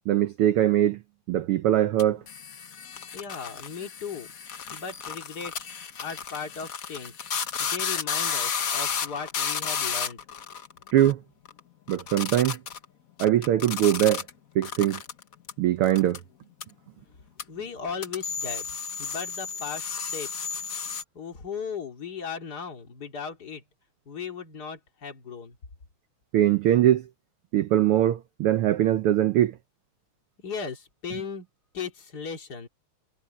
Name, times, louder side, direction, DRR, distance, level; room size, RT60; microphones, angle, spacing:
voice 1, 0.1-1.0 1.3-2.2 10.9-11.2 11.9-12.6 13.2-14.3 14.5-15.0 15.6-16.2 26.3-27.1 27.5-29.6, right 12 dB, 80° right, 1.2 m, -22 dB
sound 1, 2.0-11.1 11.4-11.6 11.9-12.8 13.2-14.3 14.6-15.5 15.8-16.2 16.6-16.7 17.4-17.5 18.0-21.0, left 7 dB, 75° left, 0.7 m, -33 dB
voice 2, 3.1-4.3 4.7-5.7 6.0-7.1 7.6-10.2 17.5-18.7 19.0-20.3 21.1-23.6 24.1-25.6 30.4-31.5 31.7-32.7, left 6 dB, 35° left, 2.9 m, -37 dB
omnidirectional pair, 3.3 m